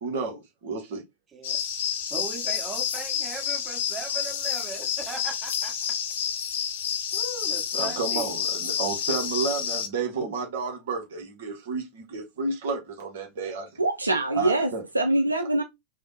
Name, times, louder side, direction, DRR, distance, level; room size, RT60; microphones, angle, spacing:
voice 1, 0.0-1.0 7.7-13.8 14.3-14.8, right 4 dB, 55° right, 0.8 m, -31 dB
sound 1, 1.4-9.9, left 8 dB, 55° left, 0.5 m, -29 dB
voice 2, 2.1-5.7 7.1-8.3, right 5 dB, 20° right, 1.5 m, -38 dB
voice 3, 13.8-14.7 14.9-15.6, right 2 dB, 80° right, 0.4 m, -23 dB
3.2 x 2.0 x 4.0 m
figure-of-eight pair, 90°, 0 cm